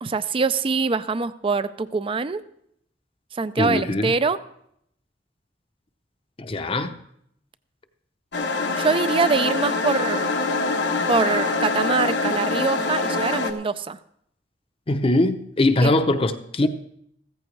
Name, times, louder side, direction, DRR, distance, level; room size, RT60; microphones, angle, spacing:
voice 1, 0.0-2.4 3.4-4.4 8.8-10.3 11.1-14.0 15.8-15.9, right 4 dB, 30° right, 14 dB, 0.4 m, -24 dB
voice 2, 3.6-4.1 6.4-6.9 14.9-16.7, left 2 dB, 30° left, 8 dB, 0.7 m, -21 dB
sound 1, 8.3-13.5, left 3 dB, 85° left, 1.2 m, -24 dB
15.5 x 14.0 x 3.2 m, 0.72 s
head